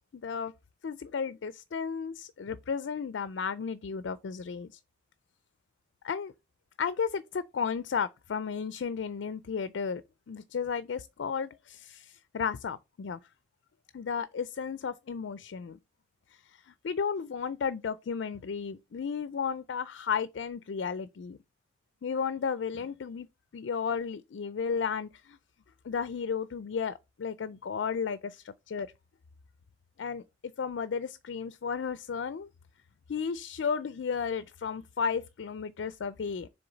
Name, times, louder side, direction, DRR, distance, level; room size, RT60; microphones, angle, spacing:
voice 1, 0.1-0.5 0.8-4.8 6.0-6.3 6.8-13.2 13.9-15.8 16.3-21.4 22.0-23.3 23.5-25.4 25.8-28.9 30.0-30.2 30.6-32.5 33.1-36.5, left 6 dB, 75° left, 0.4 m, -33 dB
6.9 x 3.5 x 3.9 m
head